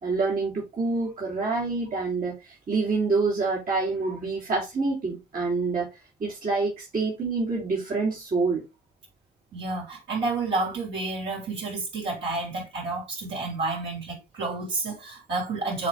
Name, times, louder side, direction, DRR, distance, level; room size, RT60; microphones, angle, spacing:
voice 1, 0.0-5.9 6.2-8.6, right 3 dB, 45° right, 2.8 m, -27 dB
voice 2, 9.5-15.9, right 3 dB, 65° right, 4.4 m, -30 dB
7.6 x 3.6 x 3.7 m
hypercardioid pair, 45°, 20 cm